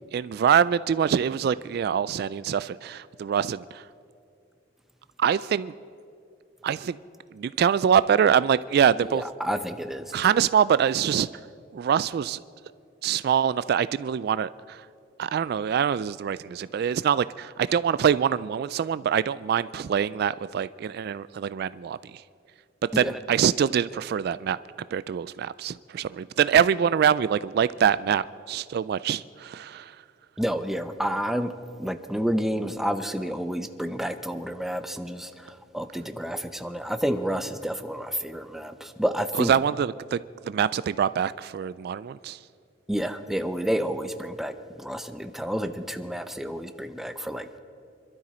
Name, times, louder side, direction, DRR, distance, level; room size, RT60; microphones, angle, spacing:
voice 1, 0.1-3.8 5.2-5.7 6.6-7.0 7.3-9.2 10.1-11.3 11.7-12.4 13.0-14.9 15.2-22.2 23.0-24.6 24.9-30.0 39.4-42.4, right 8 dB, 60° right, 17 dB, 0.3 m, -24 dB
voice 2, 9.1-10.1 23.0-23.2 30.4-31.5 31.8-39.5 42.9-47.6, equal, ahead, 8 dB, 0.7 m, -30 dB
26.5 x 12.5 x 4.3 m, 2.4 s
head